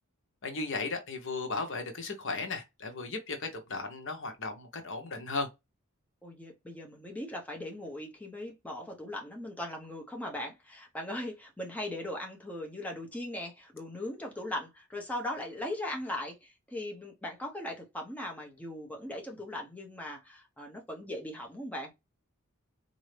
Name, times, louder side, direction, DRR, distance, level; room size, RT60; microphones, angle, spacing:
voice 1, 0.4-5.5, left 3 dB, 60° left, 0.9 m, -36 dB
voice 2, 6.2-21.9, left 1 dB, 5° left, 0.8 m, -39 dB
4.2 x 2.6 x 3.2 m
head